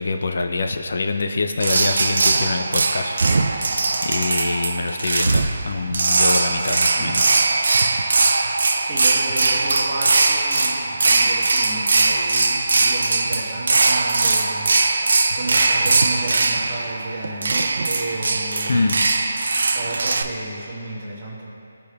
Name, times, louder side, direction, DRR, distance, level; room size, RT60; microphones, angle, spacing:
voice 1, 0.0-7.4 18.7-19.0, left 3 dB, 60° left, 6 dB, 0.4 m, -25 dB
sound 1, 1.6-20.2, right 3 dB, 65° right, 0.4 m, -20 dB
voice 2, 8.8-14.7 15.3-18.8 19.7-21.5, right 2 dB, 25° right, -6 dB, 1.2 m, -32 dB
14.0 x 5.0 x 2.3 m, 3.0 s
hypercardioid pair, 170°, 0 cm